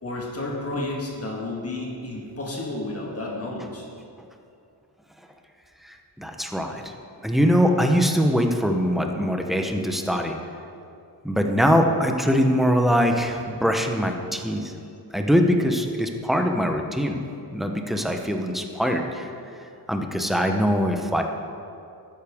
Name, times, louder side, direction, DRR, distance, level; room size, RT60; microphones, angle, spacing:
voice 1, 0.0-3.9, left 2 dB, 35° left, -2 dB, 1.6 m, -31 dB
voice 2, 5.8-6.9 7.2-10.3 11.2-14.7 15.1-17.2 17.5-19.3 19.9-21.2, equal, ahead, 3 dB, 0.8 m, -22 dB
12.0 x 9.3 x 3.6 m, 2.5 s
wide cardioid pair, 115°, 40 cm